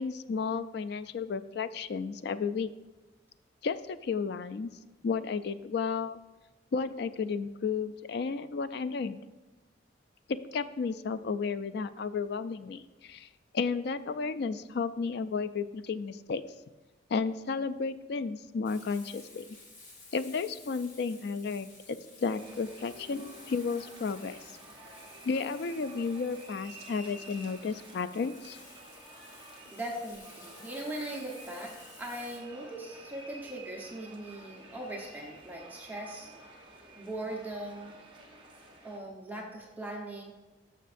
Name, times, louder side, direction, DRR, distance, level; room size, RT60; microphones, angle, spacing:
voice 1, 0.0-2.7 3.6-4.7 5.0-6.2 6.7-9.2 10.5-13.3 13.5-16.4 17.1-19.4 20.1-24.4 25.2-28.6, left 5 dB, 60° left, 12 dB, 0.4 m, -33 dB
Frying (food), 18.6-32.4, left 3 dB, 45° left, 1.5 m, -54 dB
sound 1, 22.3-39.0, right 1 dB, 25° right, 1.1 m, -51 dB
voice 2, 29.7-36.3 37.0-37.9 38.8-40.3, right 1 dB, 10° right, -2 dB, 1.0 m, -40 dB
12.0 x 6.4 x 2.6 m, 1.2 s
head